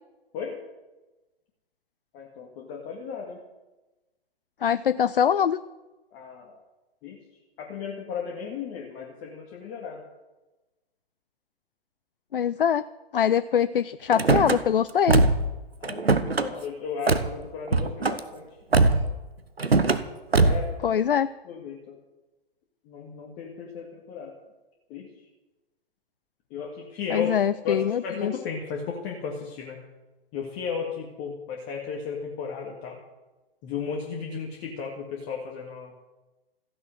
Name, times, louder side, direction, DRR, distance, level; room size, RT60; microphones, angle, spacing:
voice 1, 2.1-3.4 6.1-6.6 7.0-7.2 7.6-10.0 15.8-18.5 20.4-20.9 21.5-22.0 22.9-24.3 24.9-25.1 26.5-27.3 27.6-29.8 30.3-33.0 33.6-35.9, left 6 dB, 25° left, 0 dB, 1.9 m, -35 dB
voice 2, 4.6-5.6 12.3-12.8 13.1-15.2 20.8-21.3 27.1-28.3, left 8 dB, 60° left, 16 dB, 0.5 m, -23 dB
Car / Slam, 14.1-14.6 15.1-15.5 15.8-16.5 17.1-17.3 17.7-18.2 18.7-19.1 19.6-20.0 20.3-20.7, right 3 dB, 80° right, 1.2 m, -21 dB
15.0 x 10.5 x 7.6 m, 1.1 s
figure-of-eight pair, 120°, 30 cm